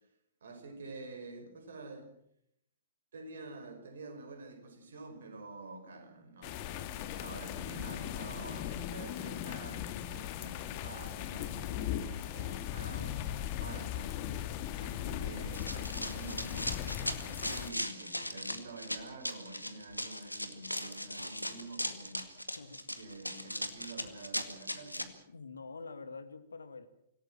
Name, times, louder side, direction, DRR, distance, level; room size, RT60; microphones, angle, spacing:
voice 1, 0.4-2.1 3.1-14.1 14.4-22.3 23.0-25.2, right 2 dB, 60° right, 7 dB, 5.5 m, -48 dB
sound 1, 6.4-17.7, left 11 dB, 35° left, 2.1 m, -38 dB
Run, 15.5-25.0, equal, 90° left, 2.0 m, -38 dB
voice 2, 22.6-22.9 25.3-26.9, left 4 dB, 70° left, 12 dB, 1.9 m, -47 dB
26.0 x 17.5 x 7.5 m, 0.76 s
figure-of-eight pair, 110°, 0 cm